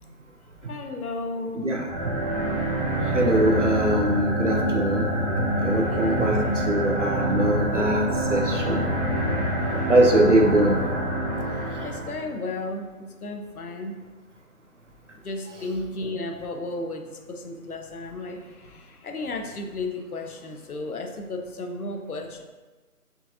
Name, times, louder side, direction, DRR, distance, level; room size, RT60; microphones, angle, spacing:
voice 1, 0.7-1.8 5.9-7.0 9.7-9.9 10.3-10.5 11.5-14.0 15.2-22.4, left 2 dB, 70° left, 4 dB, 0.7 m, -34 dB
sound 1, 1.8-12.3, right 1 dB, 20° right, 1.4 m, -26 dB
voice 2, 3.0-5.2 5.6-8.9 9.9-10.8, right 1 dB, 50° right, 2 dB, 0.6 m, -22 dB
4.7 x 4.0 x 2.7 m, 1.2 s
figure-of-eight pair, 180°, 46 cm